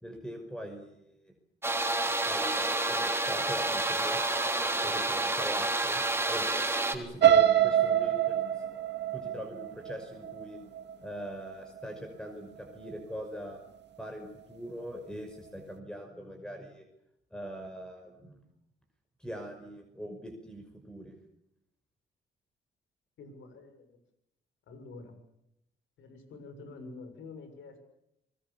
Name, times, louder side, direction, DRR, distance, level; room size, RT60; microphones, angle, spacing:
voice 1, 0.0-1.3 2.2-4.2 4.8-6.0 6.3-6.5 6.9-8.6 9.1-10.6 11.0-13.6 14.0-16.8 17.3-18.4 19.2-21.1, equal, 5° left, 4 dB, 5.6 m, -42 dB
sound 1, 1.6-7.0, right 2 dB, 10° right, 3.5 m, -29 dB
sound 2, 7.2-11.2 11.6-12.0 12.3-12.4, right 10 dB, 60° right, 2.2 m, -25 dB
voice 2, 23.2-23.8 24.7-25.1 26.0-27.8, left 3 dB, 75° left, 8 dB, 7.1 m, -47 dB
27.0 x 21.5 x 7.3 m, 0.80 s
cardioid pair, 90°, 20 cm